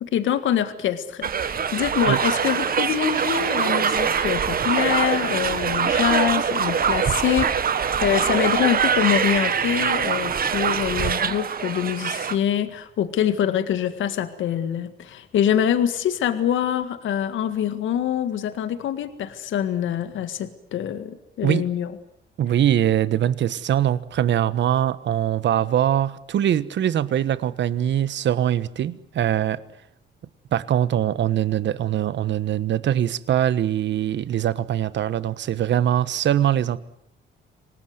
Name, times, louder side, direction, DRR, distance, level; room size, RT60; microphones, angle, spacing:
voice 1, 0.0-21.9, left 10 dB, 75° left, 11 dB, 1.9 m, -25 dB
sound 1, 1.2-12.4, right 7 dB, 50° right, 1.6 m, -23 dB
voice 2, 22.4-29.6 30.5-36.8, right 10 dB, 65° right, 16 dB, 1.3 m, -22 dB
26.5 x 19.0 x 9.5 m, 0.74 s
cardioid pair, 90°, 20 cm